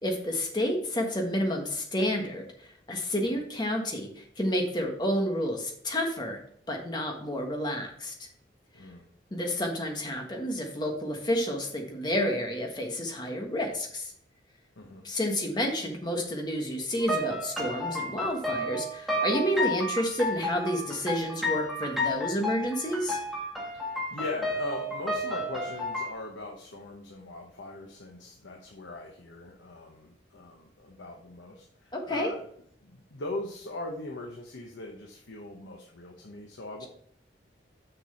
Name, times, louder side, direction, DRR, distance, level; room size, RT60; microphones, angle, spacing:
voice 1, 0.0-6.4 6.7-8.1 9.3-14.1 15.0-23.2 31.9-32.3, equal, 20° left, 2 dB, 1.3 m, -30 dB
sound 1, 17.0-26.1, left 1 dB, ahead, 1.5 m, -32 dB
voice 2, 23.7-32.4 32.8-36.9, left 2 dB, 80° left, 0 dB, 1.0 m, -40 dB
6.6 x 6.0 x 4.3 m, 0.63 s
head